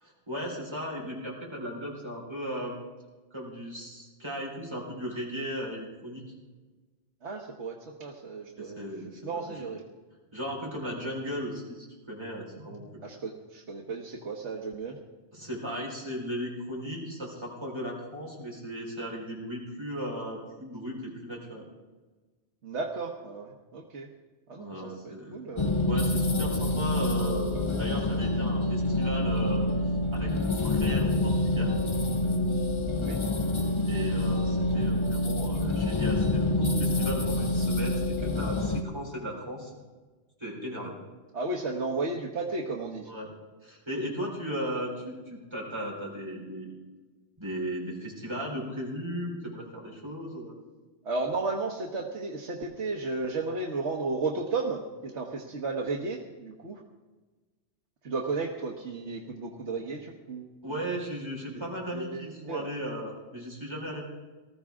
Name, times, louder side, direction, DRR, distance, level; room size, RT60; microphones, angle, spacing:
voice 1, 0.0-2.7 3.3-6.2 8.6-9.7 10.3-12.9 15.3-21.6 24.5-25.3 25.8-29.7 30.1-31.7 33.8-39.7 40.4-40.9 43.1-43.3 43.6-46.7 47.4-50.5 60.6-64.0, equal, 25° right, -3 dB, 4.3 m, -36 dB
voice 2, 7.2-9.8 13.0-15.0 22.6-24.1 24.5-25.7 32.9-33.2 41.3-43.1 51.0-56.8 58.0-60.8 61.5-62.7, right 3 dB, 85° right, -1 dB, 1.5 m, -34 dB
sound 1, 25.6-38.8, left 2 dB, 30° left, 0.7 m, -27 dB
20.0 x 14.0 x 3.6 m, 1.3 s
omnidirectional pair, 1.2 m